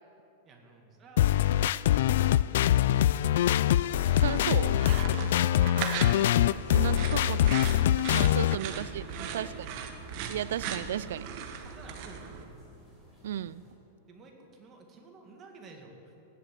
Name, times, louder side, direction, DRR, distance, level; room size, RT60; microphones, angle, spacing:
voice 1, 0.4-1.4 2.5-3.0 6.5-7.4 8.3-9.6 10.3-10.5 11.6-12.4 14.1-16.1, right 3 dB, 25° right, 2 dB, 2.1 m, -52 dB
sound 1, 1.2-8.6, left 12 dB, 70° left, 0.3 m, -24 dB
sound 2, 4.0-12.4, right 7 dB, 45° right, 1.3 m, -39 dB
voice 2, 4.1-4.8 6.7-7.6 8.1-9.5 10.3-11.5 13.2-13.6, right 11 dB, 80° right, 19 dB, 0.4 m, -34 dB
sound 3, 6.7-13.7, equal, ahead, 4.4 m, -57 dB
16.0 x 11.0 x 7.5 m, 2.9 s
supercardioid pair, 155°, 0 cm